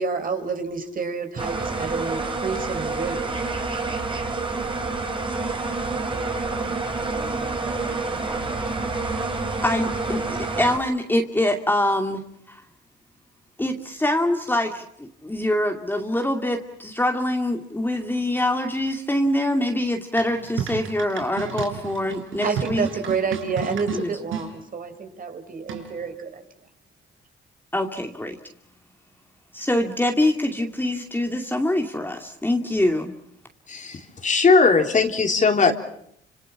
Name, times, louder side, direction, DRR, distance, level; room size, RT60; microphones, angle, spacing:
voice 1, 0.0-3.2 22.4-26.4, right 5 dB, 45° right, 6 dB, 4.6 m, -29 dB
sound 1, 1.4-10.8, right 3 dB, 25° right, 4.6 m, -28 dB
voice 2, 9.6-12.6 13.6-22.9 23.9-24.1 27.7-28.4 29.5-33.1, left 1 dB, 10° left, 3 dB, 2.5 m, -24 dB
sound 2, 20.2-24.5 25.7-26.1, right 8 dB, 85° right, 4.9 m, -32 dB
voice 3, 33.7-35.7, left 4 dB, 40° left, 4 dB, 3.6 m, -19 dB
30.0 x 27.0 x 6.0 m, 0.72 s
cardioid pair, 90°, 20 cm